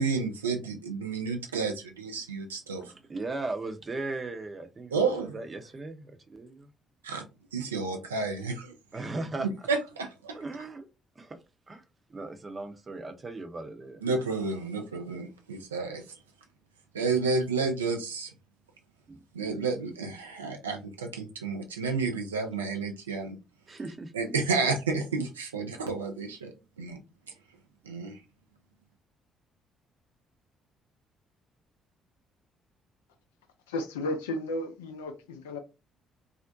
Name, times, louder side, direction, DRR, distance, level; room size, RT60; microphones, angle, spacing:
voice 1, 0.0-2.9 4.9-5.4 7.0-7.2 7.5-8.7 9.4-10.4 14.0-16.0 16.9-18.3 19.3-23.4 24.1-27.0 27.8-28.2, right 4 dB, 85° right, 0.4 m, -31 dB
voice 2, 3.1-6.7 8.9-9.5 10.3-10.9 11.2-11.4 11.7-11.8 12.1-14.0 19.1-19.2 23.7-24.1, right 2 dB, 30° right, 0.6 m, -37 dB
voice 3, 33.7-35.6, left 1 dB, 80° left, 0.4 m, -33 dB
2.5 x 2.1 x 2.5 m
figure-of-eight pair, 45°, 0 cm